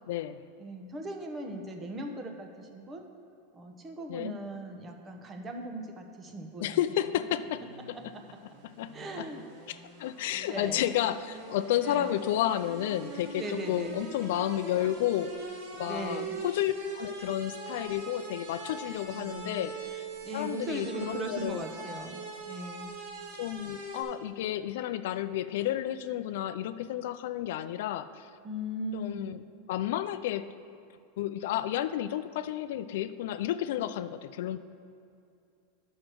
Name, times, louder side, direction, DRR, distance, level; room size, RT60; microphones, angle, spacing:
voice 1, 0.1-0.4 4.1-4.3 6.6-8.0 8.8-9.3 9.7-15.3 15.7-20.1 20.3-21.6 23.4-28.3 28.9-29.4 29.7-30.5 31.2-34.6, left 12 dB, 70° left, 13 dB, 0.3 m, -31 dB
voice 2, 0.6-3.0 3.5-6.8 8.1-8.2 8.9-9.4 10.4-10.9 11.8-12.2 13.4-14.0 15.9-16.4 19.1-19.7 20.2-23.0 28.4-29.3, right 1 dB, 20° right, 4 dB, 1.0 m, -39 dB
sound 1, 7.3-24.0, right 3 dB, 75° right, 2.0 m, -43 dB
10.5 x 6.4 x 4.6 m, 2.5 s
supercardioid pair, 140°, 0 cm